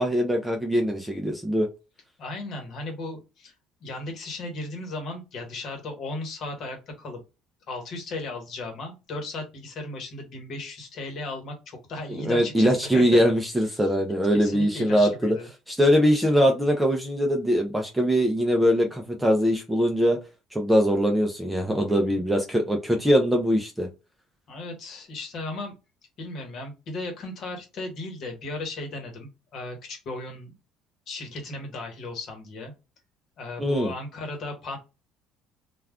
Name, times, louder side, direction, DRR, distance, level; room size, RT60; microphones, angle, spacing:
voice 1, 0.0-1.7 12.1-15.4 15.7-20.2 20.5-23.9 33.6-33.9, equal, 5° right, 2 dB, 0.4 m, -22 dB
voice 2, 2.2-3.5 3.8-7.2 7.7-13.0 13.8-13.9 14.3-15.5 21.9-22.2 24.5-25.7 26.2-30.5 31.1-32.7 33.4-34.8, left 2 dB, 45° left, 4 dB, 1.0 m, -36 dB
2.3 x 2.3 x 3.4 m, 0.28 s
cardioid pair, 150°, 0 cm